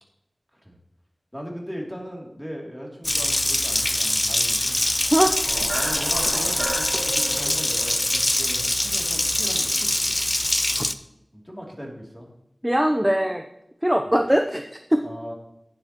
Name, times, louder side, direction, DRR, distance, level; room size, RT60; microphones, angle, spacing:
voice 1, 1.3-4.8 5.5-10.2 11.3-12.3 15.0-15.3, equal, 5° left, -1 dB, 2.9 m, -38 dB
Water tap faucet, 3.0-10.9, left 1 dB, 30° left, 0.5 m, -23 dB
sound 1, 4.9-9.2, right 2 dB, 85° right, 1.8 m, -34 dB
voice 2, 12.6-13.4 13.8-15.0, equal, 10° right, 5 dB, 0.7 m, -21 dB
12.5 x 9.6 x 3.0 m, 0.82 s
wide cardioid pair, 60°, 0 cm